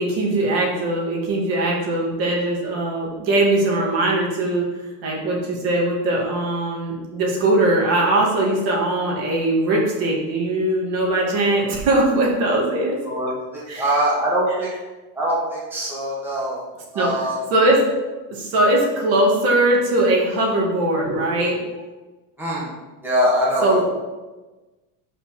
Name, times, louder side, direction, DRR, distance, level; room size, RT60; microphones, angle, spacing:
voice 1, 0.0-4.7 5.0-13.0 13.7-14.0 16.9-17.8 18.3-21.6 23.6-23.8, right 1 dB, 60° right, -2 dB, 2.4 m, -20 dB
voice 2, 13.0-14.7 15.1-16.6 16.9-17.4 21.0-21.2 22.4-22.7 23.0-23.8, equal, 5° right, -6 dB, 1.4 m, -23 dB
5.6 x 5.5 x 6.1 m, 1.2 s
cardioid pair, 165°, 45 cm